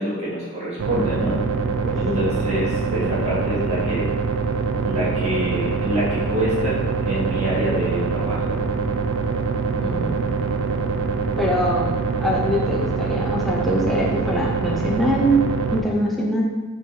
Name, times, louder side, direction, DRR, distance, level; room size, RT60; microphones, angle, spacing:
voice 1, 0.0-1.4 1.9-4.1 4.8-8.6, right 1 dB, 30° right, -9 dB, 1.1 m, -26 dB
sound 1, 0.8-15.8, right 4 dB, 75° right, 0.4 m, -24 dB
voice 2, 1.8-2.3 9.8-10.4 11.4-11.9 12.2-15.4 15.7-16.4, equal, ahead, -4 dB, 0.5 m, -23 dB
4.2 x 2.9 x 4.1 m, 1.3 s
head